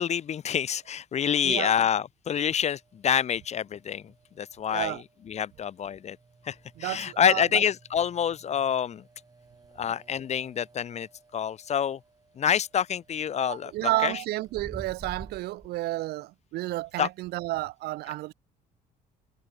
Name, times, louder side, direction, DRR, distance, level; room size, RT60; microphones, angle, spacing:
voice 1, 0.0-6.2 6.4-9.0 9.8-11.1 11.3-12.0 12.4-14.1 17.0-17.1, left 8 dB, 40° left, 0.9 m, -27 dB
voice 2, 1.4-1.8 4.7-5.0 6.8-7.6 13.4-18.3, right 18 dB, 70° right, 0.5 m, -31 dB
sound 1, 2.5-15.7, right 4 dB, 20° right, 5.3 m, -52 dB
cardioid pair, 110°, 17 cm